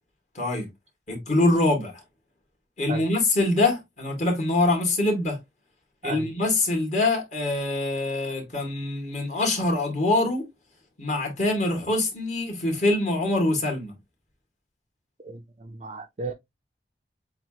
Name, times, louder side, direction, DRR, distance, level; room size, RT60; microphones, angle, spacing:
voice 1, 0.3-0.7 1.1-1.9 2.8-5.4 6.0-10.4 11.0-13.9, left 2 dB, 40° left, 2.3 m, -24 dB
voice 2, 15.2-16.3, right 3 dB, 40° right, 0.5 m, -35 dB
7.4 x 2.5 x 2.8 m
head